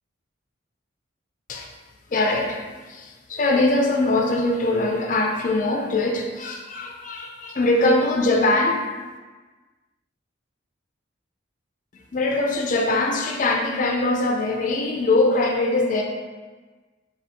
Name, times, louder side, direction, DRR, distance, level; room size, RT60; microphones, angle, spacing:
voice 1, 2.1-8.9 11.9-16.0, left 2 dB, 40° left, 2 dB, 0.4 m, -22 dB
4.2 x 2.6 x 4.1 m, 1.3 s
head